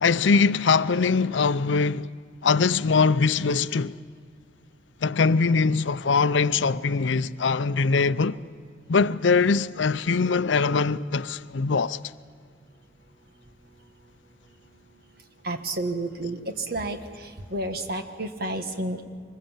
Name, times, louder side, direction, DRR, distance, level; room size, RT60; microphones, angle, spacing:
voice 1, 0.0-2.1 2.4-4.0 5.0-8.4 8.9-12.0, left 4 dB, 80° left, 0.6 m, -22 dB
voice 2, 15.4-19.0, right 2 dB, 55° right, 1.7 m, -31 dB
25.0 x 21.0 x 7.4 m
head